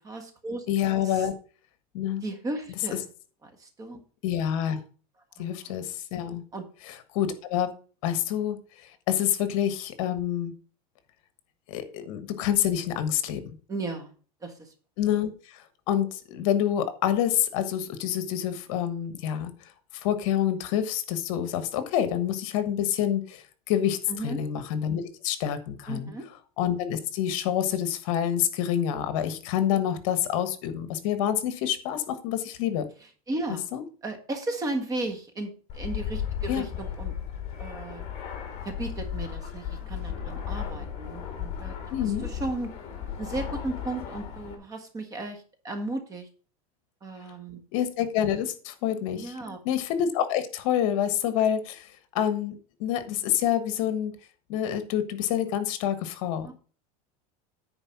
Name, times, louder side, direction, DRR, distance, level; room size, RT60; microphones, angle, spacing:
voice 1, 0.0-0.7 1.0-1.3 2.2-3.1 3.4-4.0 5.4-5.8 6.5-6.7 13.7-14.1 14.4-14.7 24.1-24.4 25.9-26.2 33.3-33.7 34.0-37.1 37.6-38.0 38.6-41.7 42.0-42.7 43.2-46.3 47.0-47.6 49.1-49.6 56.4-56.5, right 2 dB, 20° right, 6 dB, 1.5 m, -35 dB
voice 2, 0.7-1.3 1.9-2.2 4.2-4.8 5.4-6.4 6.9-7.7 8.0-8.6 9.1-10.5 11.7-13.5 15.0-19.5 19.9-24.0 24.2-26.1 26.6-32.8 33.7-33.8 36.5-36.7 41.9-42.3 47.7-49.3 49.6-52.5 52.8-54.1 54.5-56.5, left 10 dB, 60° left, 11 dB, 1.3 m, -27 dB
Fixed-wing aircraft airplane, 35.7-44.5, left 8 dB, 35° left, 2.8 m, -35 dB
9.7 x 4.7 x 5.8 m, 0.39 s
supercardioid pair, 150°, 18 cm